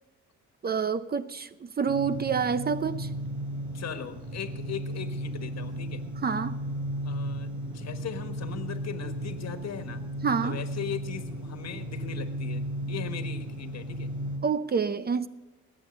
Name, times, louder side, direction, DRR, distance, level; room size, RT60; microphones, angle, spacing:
voice 1, 0.6-3.1 6.2-6.6 10.2-10.6 14.4-15.3, right 6 dB, 30° right, 0.6 m, -28 dB
sound 1, 1.9-14.4, right 1 dB, 80° right, 3.1 m, -35 dB
voice 2, 3.7-6.0 7.0-10.0 10.4-12.6 12.9-14.1, left 8 dB, 60° left, 1.5 m, -39 dB
19.5 x 8.8 x 5.3 m
cardioid pair, 90°, 30 cm